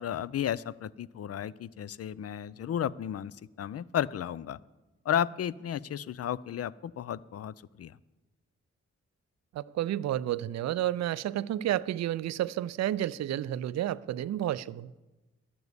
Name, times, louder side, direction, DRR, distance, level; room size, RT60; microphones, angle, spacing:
voice 1, 0.0-4.6 5.1-7.9, left 10 dB, 50° left, 19 dB, 0.5 m, -33 dB
voice 2, 9.5-14.9, right 12 dB, 60° right, 17 dB, 0.4 m, -31 dB
11.0 x 7.0 x 8.1 m, 1.1 s
supercardioid pair, 45°, 31 cm